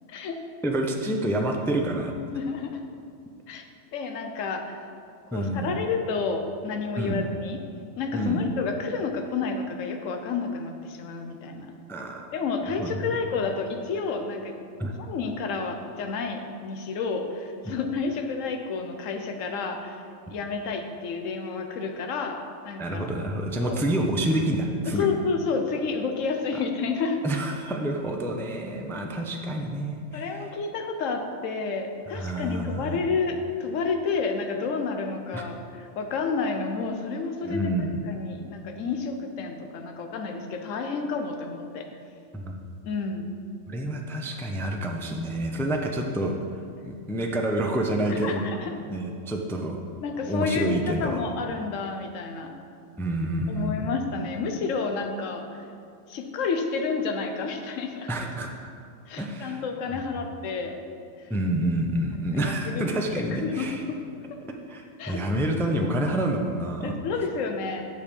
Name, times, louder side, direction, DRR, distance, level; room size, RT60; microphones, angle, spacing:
voice 1, 0.6-2.1 5.3-5.7 7.0-7.3 8.1-8.4 11.9-12.3 12.8-13.2 14.8-14.9 22.8-25.1 27.2-30.5 32.2-32.9 35.3-35.4 37.4-38.1 42.3-42.5 43.7-46.4 46.8-49.8 50.3-51.2 53.0-53.9 58.1-58.5 59.2-59.6 61.3-63.8 64.7-66.9, right 1 dB, 5° left, 2 dB, 0.3 m, -28 dB
voice 2, 2.3-2.8 3.5-3.7 3.9-4.9 5.3-7.6 8.0-11.7 12.3-14.6 15.0-20.0 20.3-22.4 22.6-23.1 23.6-23.8 25.0-27.2 30.1-42.0 42.8-43.3 48.1-48.7 50.0-52.5 53.5-55.5 56.1-58.1 59.1-60.8 61.2-61.3 62.3-62.9 63.4-64.0 65.0-65.2 66.8-67.9, left 4 dB, 85° left, 4 dB, 1.1 m, -30 dB
8.5 x 6.6 x 5.3 m, 2.4 s
omnidirectional pair, 1.3 m